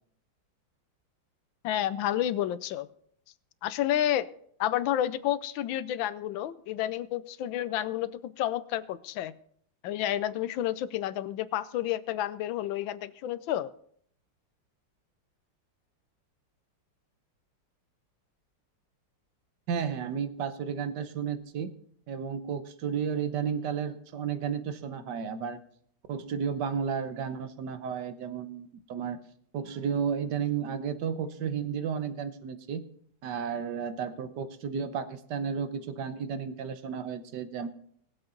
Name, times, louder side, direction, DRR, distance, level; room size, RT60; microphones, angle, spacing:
voice 1, 1.6-2.9 3.6-4.3 4.6-9.3 9.8-13.7, left 12 dB, 80° left, 15 dB, 1.4 m, -30 dB
voice 2, 19.7-21.7 22.1-25.6 26.1-29.2 29.5-32.8 33.2-37.7, right 7 dB, 65° right, 11 dB, 1.4 m, -33 dB
20.0 x 7.8 x 3.9 m, 0.64 s
omnidirectional pair, 2.1 m